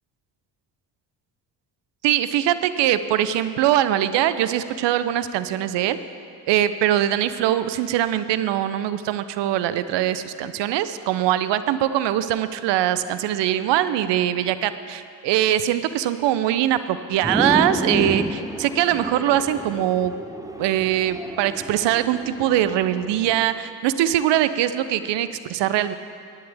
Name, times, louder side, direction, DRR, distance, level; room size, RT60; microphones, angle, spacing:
voice 1, 2.0-6.0 6.5-20.1 20.6-25.9, right 12 dB, 60° right, 13 dB, 0.7 m, -22 dB
sound 1, 17.2-23.5, right 1 dB, 5° right, 0.9 m, -30 dB
18.5 x 10.5 x 3.5 m, 2.4 s
hypercardioid pair, 50°, 50 cm